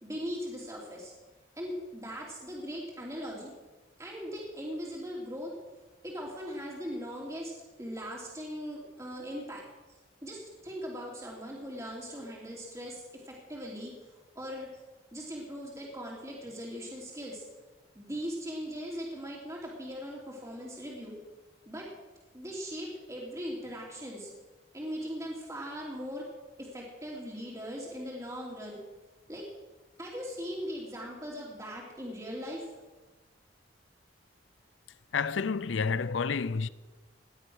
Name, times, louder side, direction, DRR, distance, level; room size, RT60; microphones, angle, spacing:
voice 1, 0.0-1.1 1.6-3.5 4.0-5.5 6.0-7.5 7.8-9.6 10.2-14.1 14.3-14.7 15.1-17.4 17.9-21.1 21.7-21.8 22.3-24.3 24.7-26.2 26.6-28.8 29.3-29.4 30.0-32.6, equal, 15° right, 2.9 m, -39 dB
voice 2, 35.1-36.7, left 5 dB, 85° left, 0.6 m, -29 dB
18.0 x 11.5 x 6.3 m
head